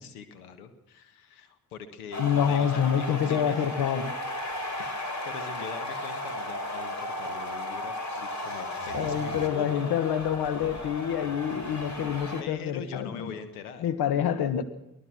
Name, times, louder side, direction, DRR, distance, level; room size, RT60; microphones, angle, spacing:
voice 1, 0.0-3.6 4.8-9.8 11.7-12.0 12.4-13.9, left 7 dB, 85° left, 10 dB, 1.8 m, -43 dB
sound 1, 2.1-12.4, left 1 dB, 40° left, 4.3 m, -35 dB
voice 2, 2.2-4.1 8.9-13.2 13.8-14.6, left 8 dB, 60° left, 13 dB, 1.5 m, -27 dB
23.5 x 18.0 x 6.3 m, 0.85 s
hypercardioid pair, 40°, 43 cm